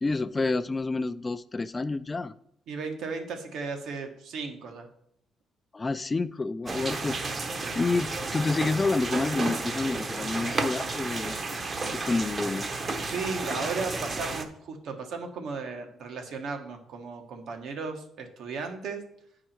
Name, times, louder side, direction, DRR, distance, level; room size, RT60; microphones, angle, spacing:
voice 1, 0.0-2.3 5.7-7.2 7.7-11.4 11.9-12.7, left 3 dB, 25° left, 14 dB, 0.4 m, -28 dB
voice 2, 2.7-4.9 13.0-19.0, right 4 dB, 75° right, 4 dB, 1.3 m, -35 dB
sound 1, 6.7-14.4, right 3 dB, 40° right, 0.9 m, -32 dB
8.9 x 4.8 x 4.4 m, 0.72 s
cardioid pair, 90°, 0 cm